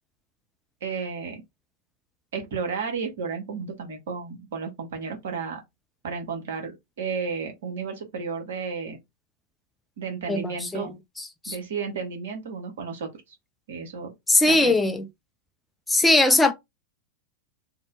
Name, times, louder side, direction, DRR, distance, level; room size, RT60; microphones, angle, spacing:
voice 1, 0.8-1.4 2.3-5.6 6.0-9.0 10.0-10.9 11.5-13.1 13.7-14.1 14.5-14.7, right 5 dB, 60° right, 1.0 m, -32 dB
voice 2, 10.3-10.9 11.2-11.6 14.3-15.1 15.9-16.5, left 2 dB, 5° left, 0.4 m, -20 dB
2.5 x 2.1 x 3.0 m
figure-of-eight pair, 90°, 0 cm